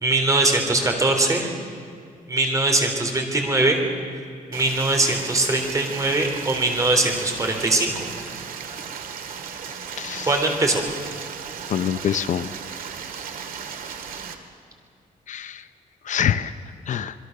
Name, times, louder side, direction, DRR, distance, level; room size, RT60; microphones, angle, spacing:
voice 1, 0.0-1.5 2.3-3.8 4.5-8.1 10.3-10.9, right 2 dB, 25° right, 3 dB, 3.6 m, -21 dB
Stream, 4.5-14.3, right 6 dB, 85° right, 2.0 m, -36 dB
voice 2, 10.0-10.3 11.7-12.5 15.3-15.6 16.1-16.5 16.9-17.1, left 9 dB, 60° left, 12 dB, 0.7 m, -25 dB
27.0 x 22.0 x 6.6 m, 2.3 s
wide cardioid pair, 150°, 14 cm